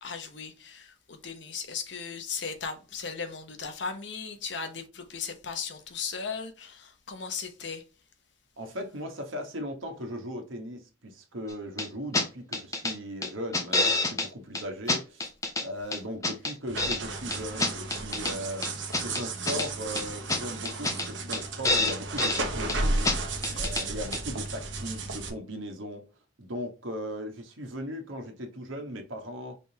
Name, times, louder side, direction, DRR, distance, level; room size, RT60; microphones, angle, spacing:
voice 1, 0.0-7.8 23.5-24.0, left 5 dB, 65° left, 1.0 m, -37 dB
voice 2, 8.6-15.3 15.6-18.7 19.0-23.1 23.5-26.0 26.4-29.6, equal, 90° right, 1.2 m, -38 dB
sound 1, 11.8-11.9 12.1-12.3 12.5-12.9 13.2-14.3 14.5-14.6 14.9-15.6 15.9-17.0 17.3-18.3 18.6-19.7 19.9-20.0 20.3-20.4 20.6-21.1 21.3-21.4 21.6-22.4 22.7-22.8 23.0-23.2 23.4-23.8 24.1-24.2, left 2 dB, 15° left, 0.6 m, -27 dB
sound 2, 16.7-25.3, right 2 dB, 70° right, 1.1 m, -33 dB
5.1 x 3.5 x 2.9 m
head